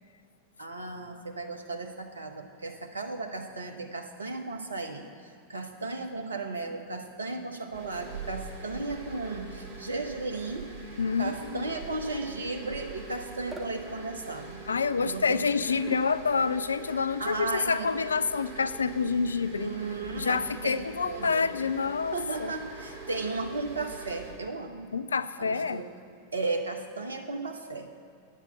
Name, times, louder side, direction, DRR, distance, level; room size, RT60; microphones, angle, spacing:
voice 1, 0.6-10.7 11.2-14.6 15.0-15.4 17.2-17.9 19.5-21.5 22.1-24.9 25.4-25.9 26.3-27.9, right 3 dB, 75° right, 4 dB, 1.0 m, -35 dB
sound 1, 7.7-24.3, right 3 dB, 50° right, 2.9 m, -44 dB
voice 2, 11.0-11.7 14.7-19.7 20.2-22.5 24.9-25.8, left 5 dB, 75° left, 14 dB, 0.3 m, -28 dB
bongo dry, 13.5-13.8 15.9-16.3, left 1 dB, 10° right, 0.9 m, -39 dB
9.8 x 8.7 x 7.9 m, 2.3 s
figure-of-eight pair, 90°, 0 cm